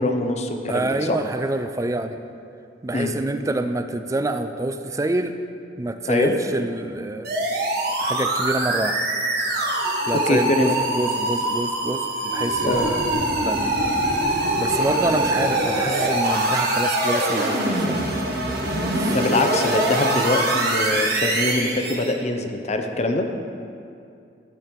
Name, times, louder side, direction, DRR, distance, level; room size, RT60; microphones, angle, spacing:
voice 1, 0.0-1.2 2.9-3.1 6.1-6.3 10.1-10.8 12.6-12.9 19.0-23.3, left 2 dB, 40° left, 5 dB, 0.6 m, -23 dB
voice 2, 0.7-2.2 2.8-5.4 5.8-7.3 8.0-9.0 10.1-13.8 14.6-18.1 18.9-19.2, right 2 dB, 20° right, 8 dB, 0.3 m, -27 dB
sound 1, 7.2-22.1, right 1 dB, 60° right, 1.3 m, -23 dB
12.0 x 4.6 x 5.1 m, 2.5 s
head